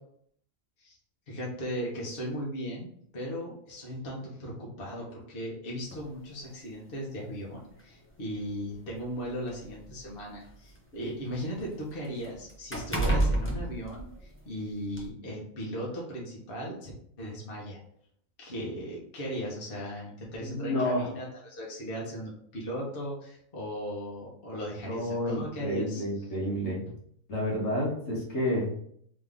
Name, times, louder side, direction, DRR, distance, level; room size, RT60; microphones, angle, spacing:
voice 1, 1.3-2.9 3.1-16.9 17.2-17.8 18.4-26.0, equal, 45° left, -4 dB, 1.3 m, -37 dB
sound 1, 5.9-6.1 7.1-7.2 7.7-7.8 8.7-10.7 11.1-14.5 14.9-15.1, right 1 dB, 15° left, 0.5 m, -31 dB
voice 2, 20.4-21.1 24.9-26.9 27.3-28.7, left 1 dB, 70° left, -4 dB, 1.7 m, -30 dB
3.6 x 3.2 x 3.6 m, 0.66 s
omnidirectional pair, 1.4 m